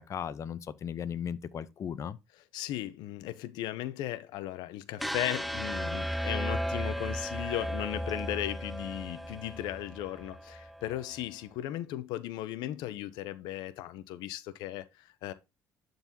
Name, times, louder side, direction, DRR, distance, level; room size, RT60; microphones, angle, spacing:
voice 1, 0.0-2.2, left 8 dB, 45° left, 0.6 m, -36 dB
voice 2, 2.5-15.3, left 13 dB, 80° left, 0.6 m, -36 dB
sound 1, 5.0-11.1, equal, ahead, 0.4 m, -35 dB
12.0 x 4.0 x 2.7 m
cardioid pair, 95°, 7 cm